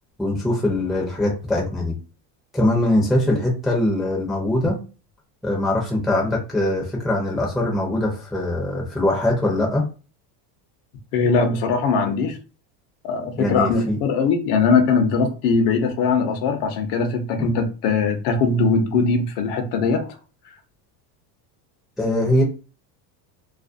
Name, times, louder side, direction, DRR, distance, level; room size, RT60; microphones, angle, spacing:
voice 1, 0.2-1.9 2.5-4.8 5.4-9.9 13.4-14.0 17.4-17.6 22.0-22.4, left 1 dB, ahead, 0.5 m, -22 dB
voice 2, 11.1-12.4 13.0-20.2, left 4 dB, 55° left, 0.7 m, -20 dB
2.5 x 2.0 x 2.4 m
supercardioid pair, 130°, 47 cm